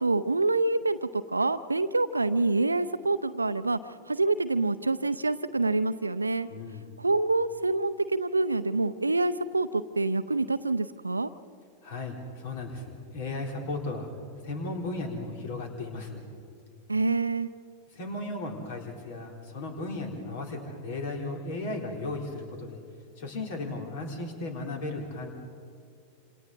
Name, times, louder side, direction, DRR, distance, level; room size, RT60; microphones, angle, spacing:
voice 1, 0.0-6.5 7.0-11.3 16.9-17.5, right 3 dB, 80° right, 12 dB, 0.6 m, -26 dB
voice 2, 6.5-6.9 11.8-14.1 14.4-16.2 17.9-22.8 23.2-25.3, left 2 dB, 50° left, 2 dB, 3.6 m, -35 dB
27.5 x 27.5 x 4.1 m, 2.3 s
figure-of-eight pair, 90°, 0 cm